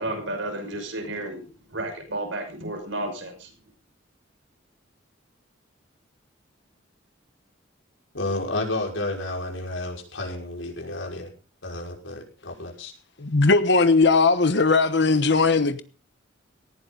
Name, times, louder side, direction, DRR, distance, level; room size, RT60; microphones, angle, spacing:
voice 1, 0.0-1.4 1.7-3.5, right 1 dB, 75° right, 6.2 m, -32 dB
voice 2, 8.1-11.3 11.6-12.9, left 2 dB, 90° left, 5.7 m, -31 dB
voice 3, 13.2-15.8, left 3 dB, 65° left, 1.2 m, -19 dB
18.0 x 15.5 x 4.0 m
head